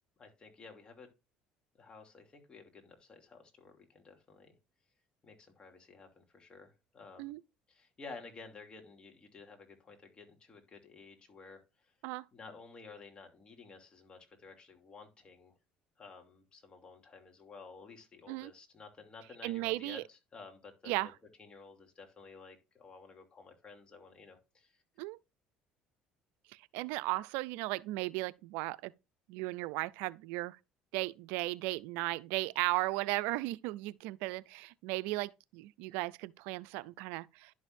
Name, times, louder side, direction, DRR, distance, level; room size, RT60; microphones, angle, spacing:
voice 1, 0.2-1.1 1.8-4.5 5.2-7.3 7.7-11.6 12.3-15.5 16.0-21.1 21.4-24.8, left 4 dB, 30° left, 2.7 m, -53 dB
voice 2, 19.4-20.0 20.9-21.1 25.0-25.2 26.5-28.9 29.3-30.6 30.9-37.5, right 20 dB, 80° right, 0.4 m, -36 dB
11.0 x 6.3 x 2.6 m
supercardioid pair, 95°, 3 cm